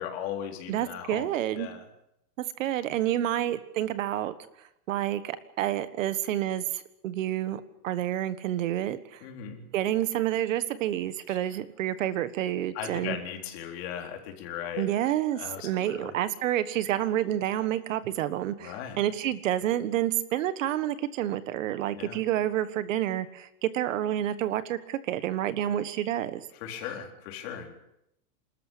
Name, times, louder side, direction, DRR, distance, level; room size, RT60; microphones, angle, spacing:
voice 1, 0.0-1.3 1.6-1.8 9.2-9.6 11.3-11.4 12.7-14.9 15.3-16.1 18.6-19.0 21.9-22.2 26.6-27.7, left 9 dB, 40° left, 2 dB, 4.1 m, -37 dB
voice 2, 0.7-1.7 2.6-4.3 4.9-9.2 9.7-13.2 14.8-26.4, right 12 dB, 55° right, 13 dB, 1.5 m, -29 dB
28.0 x 13.5 x 8.5 m, 0.81 s
supercardioid pair, 175°, 45 cm